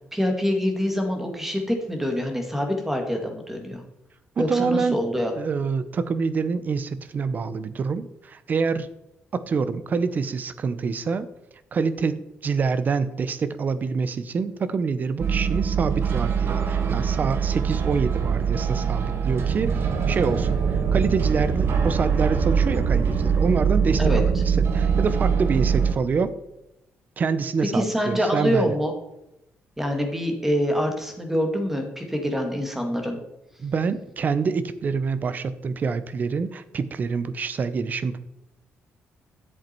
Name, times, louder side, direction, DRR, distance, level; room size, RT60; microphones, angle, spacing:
voice 1, 0.1-3.8 4.4-5.3 24.0-24.2 27.7-28.9 29.8-33.2, equal, 5° right, 4 dB, 2.1 m, -25 dB
voice 2, 4.4-5.0 5.4-8.9 9.3-11.3 11.7-26.3 27.2-28.8 33.6-38.2, right 5 dB, 40° right, 13 dB, 0.7 m, -26 dB
sound 1, 15.2-25.9, right 6 dB, 55° right, 1.4 m, -23 dB
11.0 x 7.8 x 4.5 m, 0.86 s
cardioid pair, 135°, 5 cm